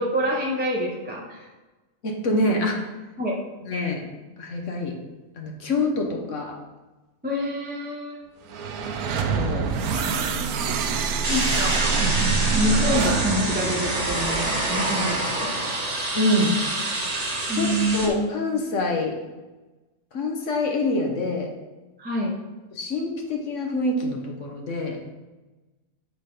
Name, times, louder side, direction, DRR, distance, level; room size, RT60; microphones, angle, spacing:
voice 1, 0.0-1.5 3.2-3.4 7.2-8.2 11.3-11.8 12.5-15.5 17.5-18.3 22.0-22.4, equal, 10° right, -3 dB, 0.7 m, -26 dB
voice 2, 2.0-2.8 3.6-4.1 4.4-4.9 5.4-6.6 9.1-9.7 16.1-16.6 17.5-19.2 20.1-21.5 22.7-25.0, left 2 dB, 55° left, 1 dB, 1.3 m, -26 dB
sound 1, 8.5-14.7, right 5 dB, 75° right, 1.1 m, -26 dB
sound 2, 11.2-18.1, right 2 dB, 30° right, 1.0 m, -26 dB
8.1 x 3.9 x 5.0 m, 1.2 s
omnidirectional pair, 1.6 m